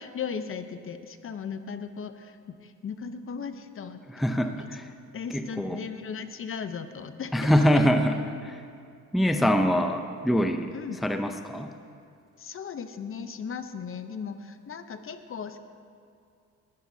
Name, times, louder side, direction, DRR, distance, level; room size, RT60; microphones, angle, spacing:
voice 1, 0.0-4.0 5.1-7.5 10.7-11.0 12.4-15.6, left 6 dB, 40° left, 9 dB, 0.8 m, -37 dB
voice 2, 4.1-4.9 5.3-5.8 7.3-8.1 8.4-8.6 9.1-10.7 11.0-11.7, equal, ahead, 6 dB, 0.6 m, -24 dB
19.0 x 13.0 x 2.8 m, 2.4 s
cardioid pair, 95°, 33 cm